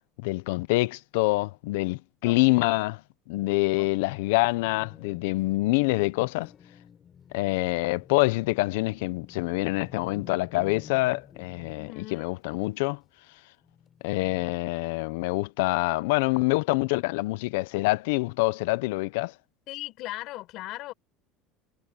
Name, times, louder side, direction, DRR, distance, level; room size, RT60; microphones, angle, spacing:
voice 1, 0.2-3.0 3.3-6.5 7.3-13.0 14.0-19.3, left 22 dB, 80° left, 0.8 m, -26 dB
voice 2, 2.2-2.7 3.8-4.1 11.8-12.3 19.7-20.9, left 18 dB, 65° left, 4.8 m, -39 dB
sound 1, 4.4-12.1 13.1-13.2 13.6-14.6, left 8 dB, 40° left, 5.6 m, -51 dB
supercardioid pair, 90°, 0 cm